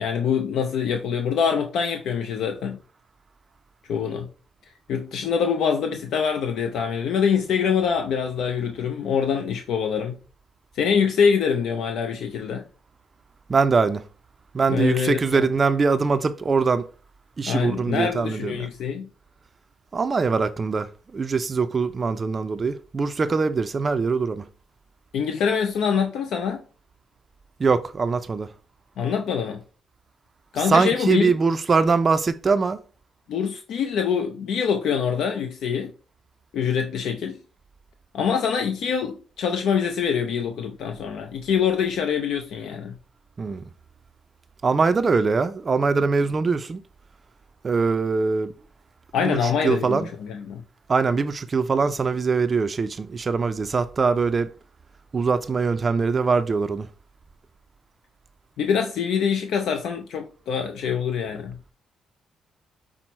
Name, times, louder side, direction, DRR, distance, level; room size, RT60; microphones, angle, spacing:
voice 1, 0.0-2.8 3.9-4.3 4.9-10.2 10.7-12.6 14.7-15.5 17.5-19.1 25.1-26.6 29.0-29.6 30.5-31.3 33.3-35.9 36.5-37.4 38.1-43.0 49.1-50.6 58.6-61.6, left 7 dB, 75° left, 0.5 m, -24 dB
voice 2, 13.5-14.0 14.5-16.9 17.4-18.7 19.9-24.5 27.6-28.5 30.6-32.8 43.4-43.6 44.6-46.8 47.6-48.5 49.2-50.1 50.9-54.5 55.1-56.9, right 4 dB, 35° right, 0.3 m, -22 dB
6.0 x 2.0 x 4.2 m
cardioid pair, 90°, 0 cm